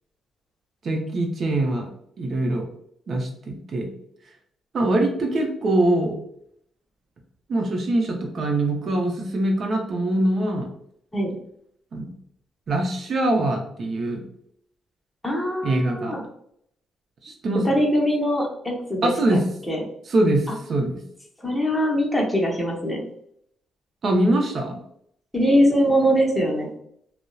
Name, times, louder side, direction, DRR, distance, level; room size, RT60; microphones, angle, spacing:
voice 1, 0.8-1.9 2.2-2.7 3.1-3.9 4.7-6.2 7.5-10.7 11.9-12.1 12.7-14.2 15.6-16.2 17.2-17.8 19.0-19.4 20.1-21.0 24.0-24.8, right 1 dB, 50° right, 2 dB, 0.6 m, -23 dB
voice 2, 15.2-16.2 17.6-19.4 19.7-19.8 21.4-23.0 25.3-26.7, equal, 10° left, -2 dB, 0.7 m, -22 dB
2.7 x 2.0 x 2.2 m, 0.70 s
cardioid pair, 90°, 0 cm